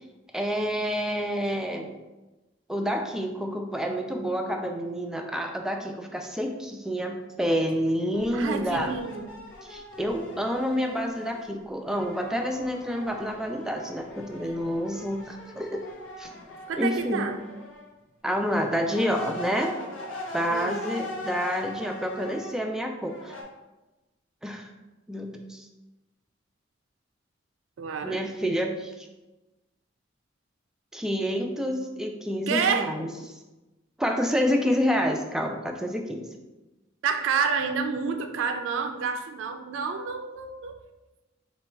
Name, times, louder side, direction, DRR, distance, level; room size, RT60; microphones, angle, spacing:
voice 1, 0.3-1.9 2.7-8.9 9.7-15.8 16.2-16.3 16.8-17.3 18.2-19.7 20.3-23.3 24.4-24.7 25.1-25.7 28.0-29.1 30.9-33.1 34.0-36.3, equal, 5° right, 3 dB, 0.3 m, -28 dB
sound 1, 8.1-11.5 11.9-17.9 18.4-22.6 23.1-23.4, left 1 dB, 85° left, 0.8 m, -40 dB
voice 2, 8.3-9.3 16.7-17.4 20.5-20.8 27.8-28.2 32.5-32.9 37.0-40.8, right 5 dB, 80° right, 7 dB, 0.3 m, -29 dB
3.9 x 2.2 x 4.4 m, 1.1 s
head